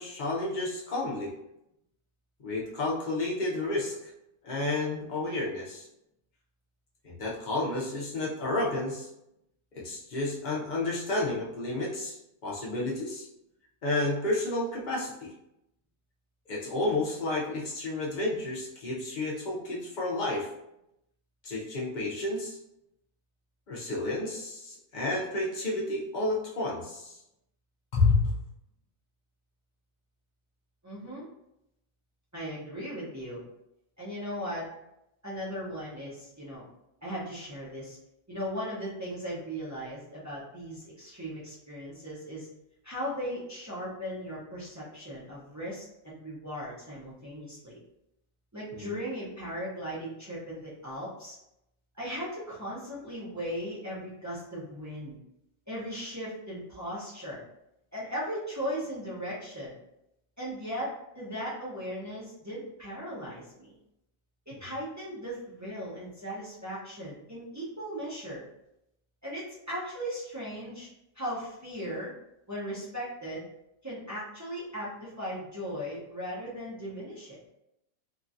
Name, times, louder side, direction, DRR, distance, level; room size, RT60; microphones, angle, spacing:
voice 1, 0.0-1.3 2.4-4.0 4.4-5.8 7.0-9.1 9.8-12.2 12.4-13.3 13.8-15.3 16.5-20.5 21.4-22.6 23.7-27.1 27.9-28.3 48.7-48.9 64.5-64.6, left 2 dB, 50° left, -4 dB, 0.6 m, -30 dB
voice 2, 30.8-31.2 32.3-33.4 34.0-34.6 35.2-36.6 37.0-38.0 38.3-42.5 42.8-47.8 48.5-51.4 51.9-55.2 55.7-57.4 57.9-59.8 60.4-60.9 61.1-63.8 64.5-68.4 69.2-70.9 71.1-72.1 72.5-73.4 73.8-77.4, equal, 25° right, -8 dB, 0.4 m, -37 dB
2.9 x 2.3 x 2.5 m, 0.83 s
omnidirectional pair, 1.4 m